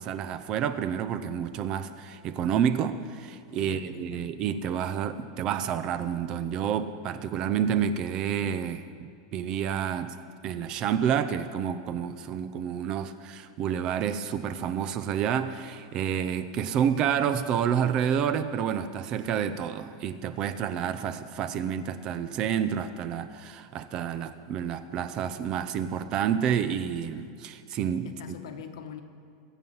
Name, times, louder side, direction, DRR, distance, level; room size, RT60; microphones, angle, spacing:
voice 1, 0.0-10.2 10.4-28.4, right 8 dB, 25° right, 0.5 m, -29 dB
voice 2, 3.5-4.2 14.5-14.7 15.0-15.2 28.0-29.0, left 7 dB, 70° left, 1.3 m, -43 dB
22.5 x 7.7 x 5.5 m
supercardioid pair, 180°, 3 cm